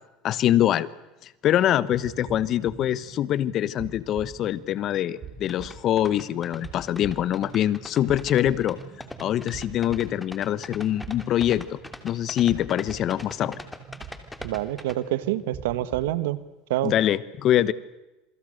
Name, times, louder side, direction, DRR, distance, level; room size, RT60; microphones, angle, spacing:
voice 1, 0.2-0.9 1.4-8.8 9.2-13.6 16.8-17.7, left 12 dB, 45° left, 18 dB, 1.2 m, -24 dB
sound 1, 1.9-16.1, right 6 dB, 35° right, 7.3 m, -44 dB
sound 2, 5.5-14.9, left 2 dB, 10° left, 2.8 m, -41 dB
voice 2, 14.4-16.4 16.7-16.9, right 15 dB, 90° right, 15 dB, 1.6 m, -26 dB
27.5 x 24.0 x 6.7 m, 1.0 s
supercardioid pair, 125°, 0 cm